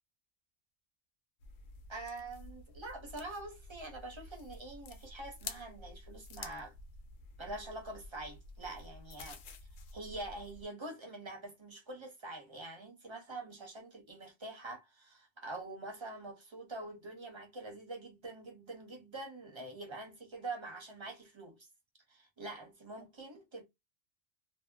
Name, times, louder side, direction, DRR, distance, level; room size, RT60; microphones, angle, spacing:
sound 1, 1.4-10.7, left 3 dB, 90° left, 1.0 m, -50 dB
voice 1, 1.9-6.7 7.4-9.4 9.9-21.7 22.1-23.6, right 2 dB, 30° right, 0.7 m, -45 dB
2.6 x 2.0 x 2.3 m
omnidirectional pair, 1.2 m